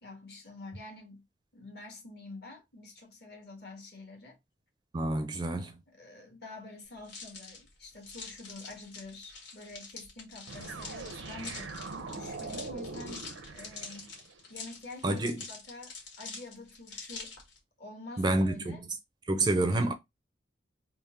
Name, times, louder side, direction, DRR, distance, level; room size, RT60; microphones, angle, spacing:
voice 1, 0.0-1.2 1.5-4.4 5.9-11.8 12.1-14.1 14.5-17.3 17.8-18.8 19.7-19.9, left 2 dB, 55° left, 1.5 m, -47 dB
voice 2, 4.9-5.7 15.0-15.4 18.2-18.8 19.3-19.9, right 2 dB, 25° right, 0.4 m, -28 dB
sound 1, 7.0-17.6, left 4 dB, 80° left, 1.6 m, -46 dB
sound 2, 10.5-14.4, right 3 dB, 85° right, 0.6 m, -42 dB
3.5 x 2.0 x 4.2 m
head